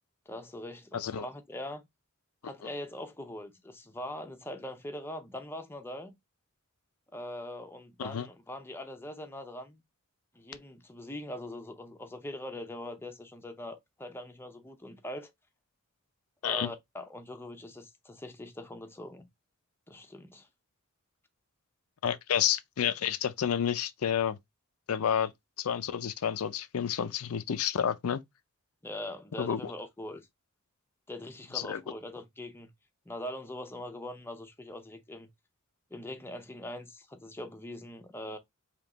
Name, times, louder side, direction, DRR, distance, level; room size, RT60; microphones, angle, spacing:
voice 1, 0.3-1.8 2.4-6.1 7.1-9.8 10.3-15.3 16.4-19.3 19.9-20.5 28.8-30.3 31.1-32.7 33.1-35.3 35.9-38.4, left 1 dB, 10° left, 0.6 m, -42 dB
voice 2, 0.9-1.2 8.0-8.3 16.4-16.7 22.0-24.4 24.9-25.3 25.6-28.2 29.4-29.6 31.5-31.8, left 8 dB, 85° left, 0.5 m, -30 dB
3.6 x 2.8 x 3.9 m
head